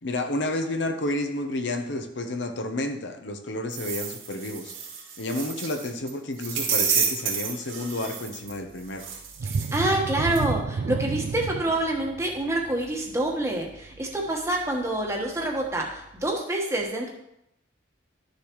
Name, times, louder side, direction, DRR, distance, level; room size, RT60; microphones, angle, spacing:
voice 1, 0.0-4.7 5.2-9.0, left 1 dB, 65° left, 5 dB, 0.8 m, -30 dB
sound 1, 3.7-6.1 6.4-8.6 9.0-10.1 10.4-10.5, right 7 dB, 80° right, 2.2 m, -30 dB
voice 2, 9.4-17.1, right 1 dB, 15° right, 0 dB, 1.2 m, -27 dB
sound 2, 9.4-14.8 15.3-15.4 15.9-16.0, right 4 dB, 60° right, 0.3 m, -31 dB
11.5 x 6.7 x 3.1 m, 0.80 s
head